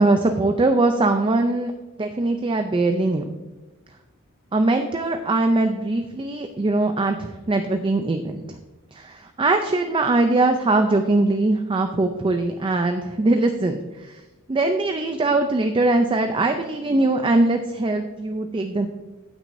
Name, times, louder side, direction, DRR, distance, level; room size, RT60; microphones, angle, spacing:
voice 1, 0.0-1.7 2.0-3.2 4.5-8.4 8.9-13.8 14.1-14.2 14.5-18.9, right 2 dB, 20° right, 6 dB, 0.4 m, -21 dB
15.0 x 6.1 x 2.6 m, 1.2 s
head